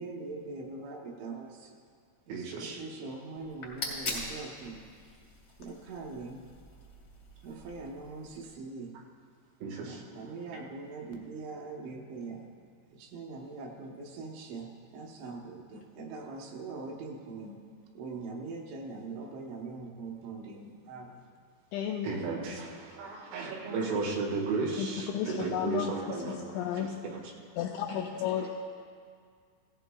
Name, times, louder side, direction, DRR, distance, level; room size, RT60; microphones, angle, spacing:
voice 1, 0.0-1.7 2.3-4.8 5.6-6.4 7.4-8.9 9.8-12.4 12.9-17.6 17.9-21.2, right 3 dB, 75° right, 0 dB, 3.2 m, -42 dB
voice 2, 2.3-2.8 9.6-10.0 22.0-26.4 26.7-27.2 28.4-28.5, right 4 dB, 90° right, -2 dB, 4.3 m, -34 dB
sound 1, 3.4-8.6, left 2 dB, 60° left, 1.0 m, -42 dB
voice 3, 21.7-22.1 24.8-24.9 25.1-26.9 27.6-28.5, left 9 dB, 90° left, 2 dB, 2.6 m, -33 dB
17.0 x 14.0 x 2.3 m, 2.1 s
omnidirectional pair, 5.8 m